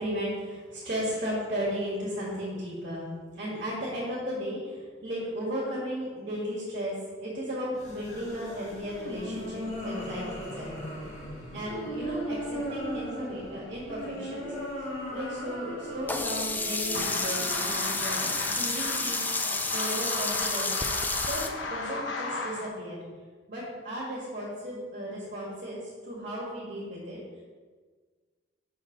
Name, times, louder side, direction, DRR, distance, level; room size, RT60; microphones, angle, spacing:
voice 1, 0.0-10.7 11.5-14.5 15.1-19.2 19.7-20.8 21.2-23.0 23.5-27.2, equal, 45° right, -6 dB, 1.9 m, -35 dB
sound 1, 7.7-19.0, equal, 40° left, 1.4 m, -38 dB
Sink (filling or washing), 16.1-21.5, left 3 dB, 10° left, 0.4 m, -30 dB
sound 2, 16.9-22.7, left 3 dB, 80° left, 0.9 m, -35 dB
5.7 x 4.7 x 5.9 m, 1.5 s
head